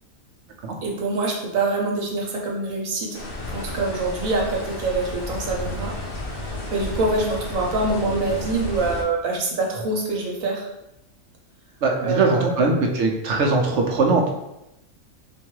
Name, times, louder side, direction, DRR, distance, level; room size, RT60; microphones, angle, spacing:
voice 1, 0.8-3.2 3.5-5.9 6.4-10.7 12.0-12.8, right 3 dB, 80° right, -1 dB, 1.3 m, -25 dB
sound 1, 3.1-9.0, left 1 dB, 50° left, 0.9 m, -32 dB
voice 2, 11.8-14.3, right 3 dB, 65° right, 2 dB, 0.9 m, -21 dB
3.8 x 2.6 x 4.6 m, 0.89 s
omnidirectional pair, 1.4 m